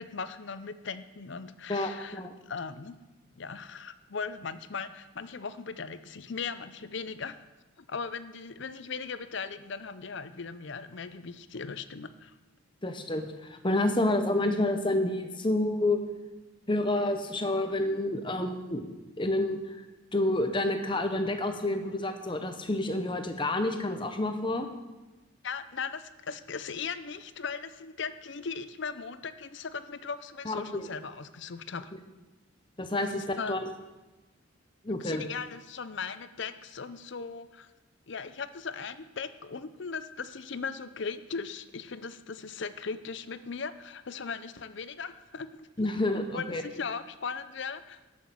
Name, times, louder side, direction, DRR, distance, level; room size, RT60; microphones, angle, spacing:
voice 1, 0.0-3.0 3.4-7.4 7.8-12.3 25.4-31.9 33.1-33.5 35.0-37.7 38.1-45.9 46.3-48.0, left 5 dB, 60° left, 13 dB, 0.6 m, -38 dB
voice 2, 1.7-2.3 12.8-16.0 16.7-18.8 19.2-19.8 20.1-24.7 30.4-30.9 32.8-33.6 34.8-35.2 45.8-46.6, left 1 dB, 25° left, 7 dB, 0.9 m, -29 dB
11.5 x 6.4 x 7.3 m, 1.1 s
head